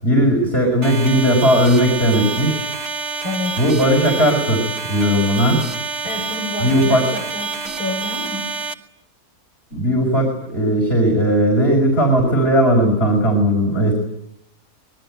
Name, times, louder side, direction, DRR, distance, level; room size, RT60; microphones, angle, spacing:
voice 1, 0.0-2.7 3.6-5.6 6.6-7.1 9.7-13.9, equal, 40° left, 1 dB, 6.1 m, -17 dB
sound 1, 0.8-8.7, right 4 dB, 50° right, 1.8 m, -27 dB
voice 2, 3.2-3.6 5.1-5.2 6.0-8.5, left 1 dB, 75° left, 2 dB, 6.1 m, -29 dB
25.5 x 21.0 x 9.3 m, 0.77 s
omnidirectional pair, 1.6 m